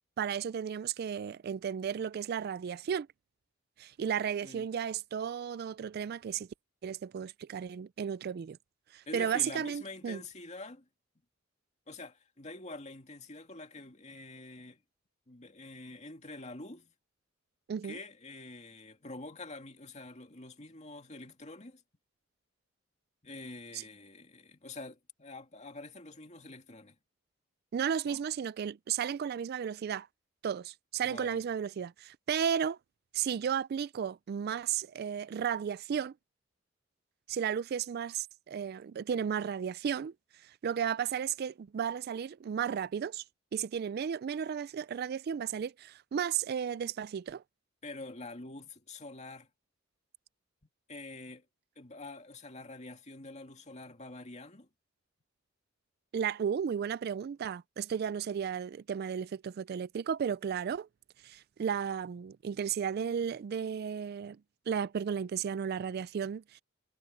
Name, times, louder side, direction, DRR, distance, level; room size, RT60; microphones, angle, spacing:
voice 1, 0.2-3.1 3.8-6.5 6.8-8.6 8.9-10.2 17.7-18.0 23.7-23.8 27.7-30.1 30.4-32.8 33.1-36.1 37.3-43.2 43.5-47.4 56.1-60.9 61.2-64.4 64.7-66.6, right 8 dB, 50° right, 0.3 m, -34 dB
voice 2, 9.1-10.9 11.9-14.8 15.3-16.9 17.8-21.8 23.2-27.0 28.0-28.2 31.0-31.4 47.8-49.5 50.9-51.4 51.8-54.7, left 2 dB, 35° left, 2.3 m, -46 dB
head